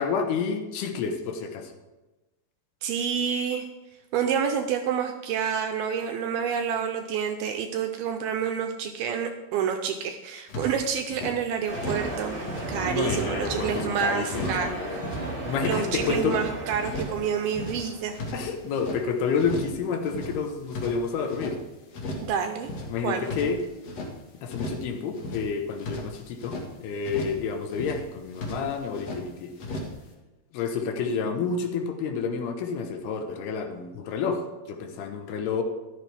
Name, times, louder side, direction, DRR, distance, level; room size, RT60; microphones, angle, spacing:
voice 1, 0.0-1.7 12.9-15.0 15.5-16.4 18.3-21.6 22.9-23.6 24.4-29.5 30.5-35.6, left 5 dB, 75° left, 5 dB, 3.0 m, -29 dB
voice 2, 2.8-3.7 4.1-12.4 12.7-14.7 15.6-18.3 22.2-22.7 23.0-23.2, right 7 dB, 80° right, 6 dB, 2.4 m, -28 dB
sound 1, 10.5-11.3 11.7-12.1 12.4-13.9 14.3-14.7 14.9-16.5 16.8-17.2 17.5-19.0 19.4-19.8 20.0-21.6 21.9-22.3 22.6-24.1 24.5-24.9 25.1-26.7 27.0-27.4 27.7-28.1 28.3-29.2 29.6-30.0, left 1 dB, 50° left, 2.1 m, -36 dB
sound 2, 11.7-18.7, right 2 dB, 35° right, 0.8 m, -35 dB
14.0 x 11.5 x 3.4 m, 1.1 s
omnidirectional pair, 4.8 m